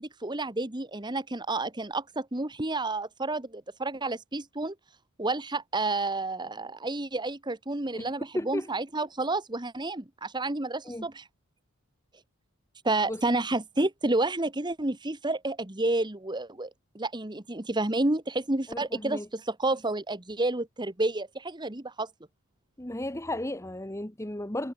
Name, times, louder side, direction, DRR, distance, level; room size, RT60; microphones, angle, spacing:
voice 1, 0.0-4.7 5.2-11.2 12.8-16.7 16.9-22.1, right 2 dB, 20° right, 1.3 m, -30 dB
voice 2, 8.3-8.7 10.8-11.1 13.1-13.2 18.7-19.3 22.8-24.7, left 1 dB, 15° left, 1.3 m, -34 dB
head